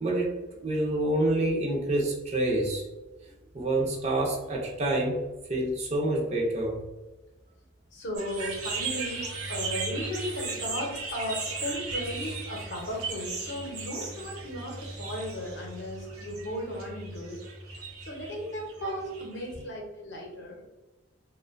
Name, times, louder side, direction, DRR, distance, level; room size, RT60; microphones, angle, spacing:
voice 1, 0.0-2.8 3.5-5.2 5.5-6.8, right 1 dB, 30° right, -2 dB, 0.4 m, -27 dB
voice 2, 7.9-17.4 18.0-20.6, equal, 55° left, -1 dB, 0.7 m, -36 dB
sound 1, 8.1-19.6, right 3 dB, 85° right, 0.5 m, -37 dB
2.5 x 2.1 x 2.4 m, 1.1 s
head